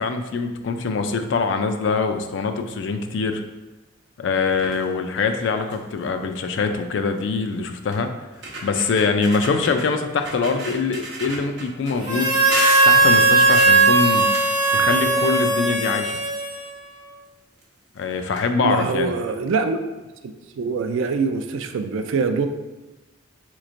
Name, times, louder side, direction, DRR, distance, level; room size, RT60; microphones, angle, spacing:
voice 1, 0.0-3.4 4.2-8.1 8.6-12.3 12.8-14.3 14.7-16.2 18.0-19.1, left 4 dB, 65° left, 6 dB, 0.3 m, -23 dB
sound 1, 4.5-4.8 5.3-5.4 5.7-6.0 7.2-7.3 7.9-8.0 8.3-9.9 10.2-11.9 12.5-15.3 15.6-16.7 17.6-17.7 18.0-18.1 18.3-18.4, right 2 dB, 55° right, 0.9 m, -33 dB
Harmonica, 12.0-16.9, right 3 dB, 20° right, 0.8 m, -18 dB
voice 2, 18.6-19.8 20.6-22.5, right 4 dB, 80° right, 7 dB, 0.3 m, -24 dB
4.1 x 3.0 x 2.5 m, 1.1 s
head